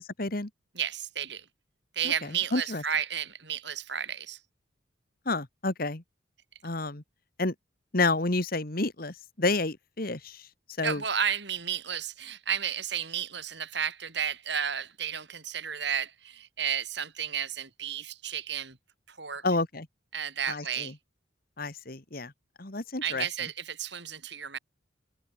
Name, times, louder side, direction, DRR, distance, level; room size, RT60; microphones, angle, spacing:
voice 1, 0.2-0.5 2.5-2.8 5.3-6.0 6.6-7.0 7.4-7.5 7.9-10.4 10.8-11.0 19.4-19.9 20.5-20.9 21.6-22.3 22.6-23.3, left 2 dB, 45° left, 1.8 m, -29 dB
voice 2, 0.7-1.4 1.9-4.4 10.8-18.8 19.1-19.4 20.1-20.9 23.0-24.6, right 8 dB, 60° right, 4.9 m, -32 dB
head